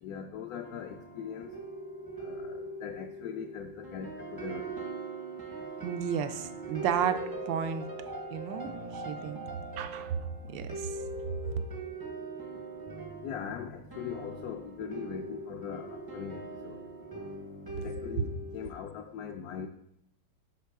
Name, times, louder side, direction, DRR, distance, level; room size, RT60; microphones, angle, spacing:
voice 1, 0.0-1.6 2.2-4.8 13.2-16.8 17.8-19.7, left 7 dB, 70° left, 4 dB, 0.9 m, -40 dB
sound 1, 0.6-18.7, right 2 dB, 25° right, 0.4 m, -41 dB
voice 2, 5.8-7.9 8.3-9.4 9.8-10.2 10.5-11.0 18.2-18.3, right 8 dB, 85° right, 10 dB, 1.3 m, -32 dB
11.0 x 4.6 x 3.5 m, 0.76 s
omnidirectional pair, 2.0 m